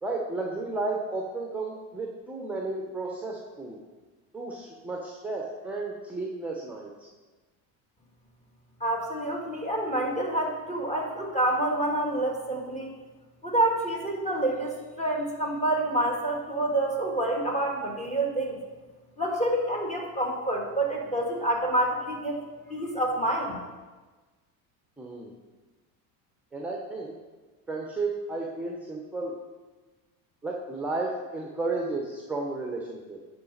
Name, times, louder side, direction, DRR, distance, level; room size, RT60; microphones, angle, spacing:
voice 1, 0.0-3.8 4.3-7.1 25.0-25.3 26.5-27.1 27.7-29.3 30.4-33.2, right 3 dB, 5° right, 0 dB, 0.9 m, -33 dB
voice 2, 8.8-12.9 13.4-18.6 19.2-22.4 22.7-23.6, right 1 dB, 15° left, -1 dB, 1.9 m, -27 dB
8.6 x 5.2 x 4.1 m, 1.3 s
supercardioid pair, 90°, 44 cm